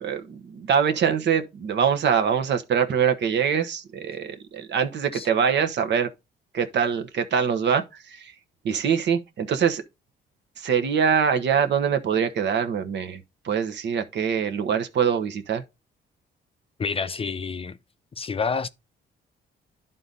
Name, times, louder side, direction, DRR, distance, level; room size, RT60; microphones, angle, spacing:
voice 1, 0.0-6.1 6.5-8.3 8.6-9.8 10.6-15.6, right 7 dB, 60° right, 1.1 m, -24 dB
voice 2, 16.8-17.8 18.2-18.7, left 5 dB, 30° left, 0.5 m, -28 dB
11.0 x 3.9 x 4.0 m
cardioid pair, 90°, 20 cm